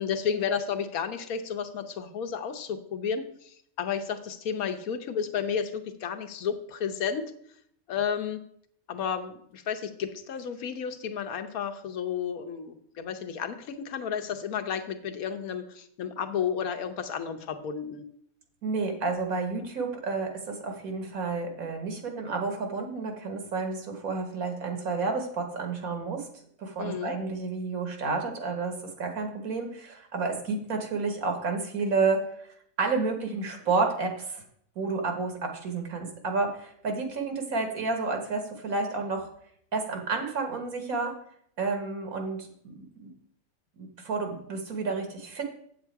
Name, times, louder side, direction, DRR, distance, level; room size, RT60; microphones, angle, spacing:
voice 1, 0.0-7.2 7.9-8.4 8.9-18.0 26.8-27.1, left 7 dB, 85° left, 8 dB, 1.3 m, -32 dB
voice 2, 18.6-26.3 26.6-32.2 32.8-34.4 34.8-39.3 39.7-41.1 41.6-42.5 42.8-43.1 43.8-45.5, right 4 dB, 85° right, 4 dB, 1.9 m, -30 dB
8.0 x 7.3 x 4.6 m, 0.66 s
omnidirectional pair, 1.5 m